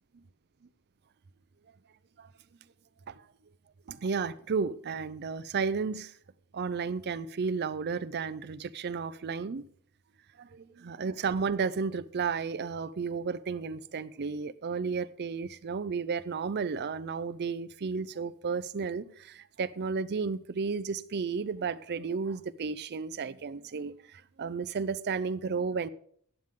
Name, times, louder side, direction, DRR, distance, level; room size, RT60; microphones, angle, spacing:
voice 1, 3.9-6.1 6.5-9.6 10.4-25.9, right 5 dB, 45° right, 0.5 m, -33 dB
15.0 x 8.9 x 3.7 m
head